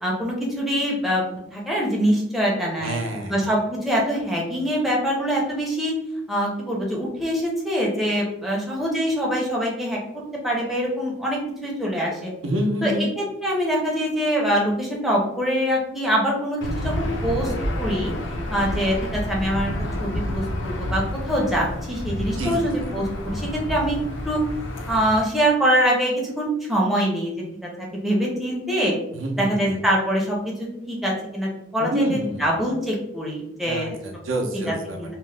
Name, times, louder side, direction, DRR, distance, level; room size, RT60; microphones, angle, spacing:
voice 1, 0.0-3.0 3.3-5.9 6.3-12.3 12.8-18.1 18.5-19.7 20.0-24.0 24.2-24.4 24.9-27.3 27.6-28.9 29.4-34.0 35.0-35.1, equal, ahead, -3 dB, 0.5 m, -24 dB
voice 2, 2.8-3.5 12.4-13.1 22.4-22.7 29.1-29.8 31.8-32.5 33.6-35.1, right 1 dB, 75° right, 2 dB, 0.6 m, -27 dB
Aircraft / Engine, 16.6-25.2, left 1 dB, 65° left, 0.5 m, -29 dB
2.8 x 2.1 x 3.2 m, 0.82 s
head